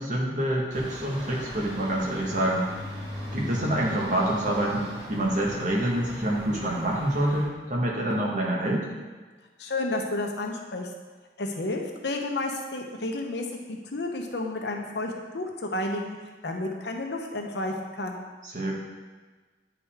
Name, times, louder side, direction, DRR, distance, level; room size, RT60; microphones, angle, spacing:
voice 1, 0.0-2.7 3.3-8.9 18.4-18.7, right 1 dB, 45° right, -3 dB, 1.5 m, -27 dB
sound 1, 0.7-7.4, equal, 65° right, 2.3 m, -39 dB
voice 2, 9.6-10.9 11.4-16.2 16.4-18.2, left 2 dB, 70° left, 2 dB, 0.9 m, -31 dB
9.2 x 5.0 x 3.6 m, 1.4 s
head